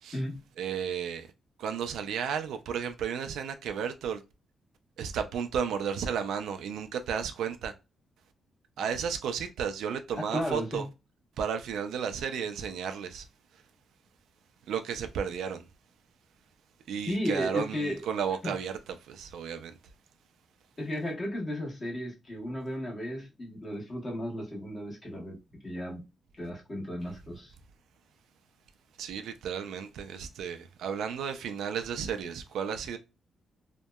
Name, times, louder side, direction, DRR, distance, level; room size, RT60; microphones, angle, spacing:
voice 1, 0.6-1.3 1.6-4.2 5.0-7.7 8.8-10.9 11.4-13.3 14.7-15.6 16.9-19.7 29.0-33.0, right 7 dB, 85° right, 0.4 m, -33 dB
voice 2, 10.3-10.9 17.1-18.0 18.4-18.6 20.8-26.0 26.4-27.5, equal, 25° left, 1.1 m, -34 dB
2.7 x 2.1 x 2.2 m
cardioid pair, 130°, 0 cm